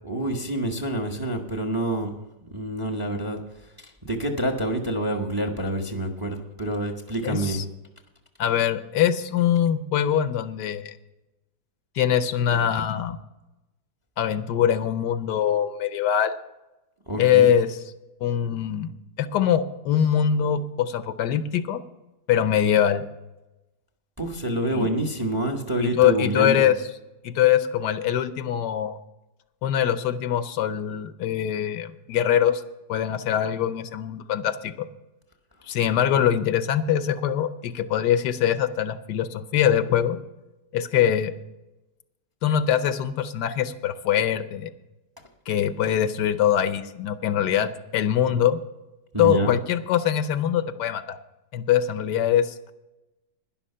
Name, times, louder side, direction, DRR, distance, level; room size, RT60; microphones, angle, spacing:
voice 1, 0.0-2.2 2.5-3.4 4.0-7.6 17.1-17.5 24.2-26.7 49.1-49.5, right 1 dB, 15° right, 4 dB, 0.8 m, -27 dB
voice 2, 7.2-7.7 8.4-11.0 12.0-13.2 14.2-16.3 17.2-17.8 18.2-18.9 19.2-21.8 22.3-23.0 24.7-24.9 25.8-26.8 27.2-29.0 29.6-32.6 32.9-34.7 35.7-40.2 40.7-41.3 42.4-44.7 45.5-48.6 49.2-51.2 51.5-52.7, left 9 dB, 75° left, 11 dB, 1.2 m, -23 dB
11.5 x 10.5 x 5.6 m, 0.99 s
omnidirectional pair, 1.9 m